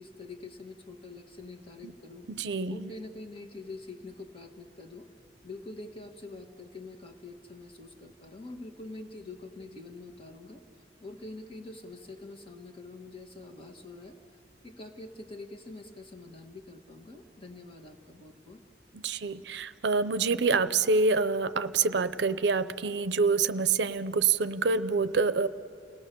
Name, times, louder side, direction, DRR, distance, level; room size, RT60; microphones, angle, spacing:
voice 1, 0.0-2.3 2.7-5.1 5.4-10.6 11.0-14.2 14.6-18.6, left 2 dB, 30° left, 4 dB, 1.6 m, -45 dB
voice 2, 2.3-2.9 18.9-25.5, right 4 dB, 75° right, 14 dB, 0.6 m, -26 dB
29.5 x 18.0 x 6.9 m, 2.5 s
head